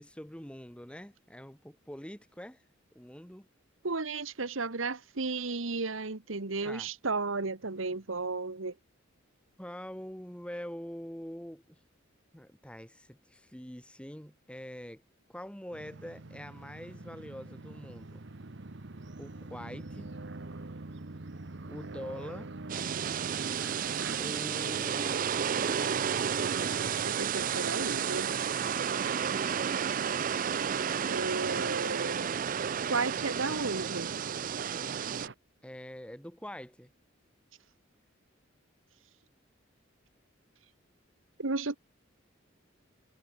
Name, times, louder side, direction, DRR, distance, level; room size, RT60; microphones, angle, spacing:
voice 1, 0.0-2.6 2.9-3.5 6.6-6.9 9.6-11.8 12.3-15.0 15.3-18.2 19.2-20.1 21.7-22.5 24.2-26.2 35.6-36.9, equal, 5° left, 3.1 m, -44 dB
voice 2, 3.8-8.7 27.0-28.3 31.1-32.3 32.9-34.1 41.4-41.8, right 3 dB, 80° right, 1.5 m, -33 dB
sound 1, 15.7-35.3, right 3 dB, 60° right, 1.1 m, -43 dB
car wash, 22.7-35.3, right 8 dB, 45° right, 0.4 m, -32 dB
head